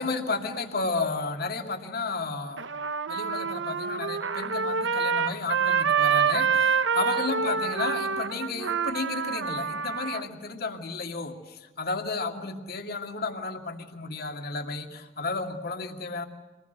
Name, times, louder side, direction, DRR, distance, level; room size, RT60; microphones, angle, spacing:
voice 1, 0.0-2.7 3.1-16.2, left 3 dB, 55° left, 4 dB, 2.4 m, -32 dB
Trumpet, 2.6-10.2, right 6 dB, 80° right, 0.9 m, -27 dB
26.0 x 20.0 x 9.2 m, 1.2 s
head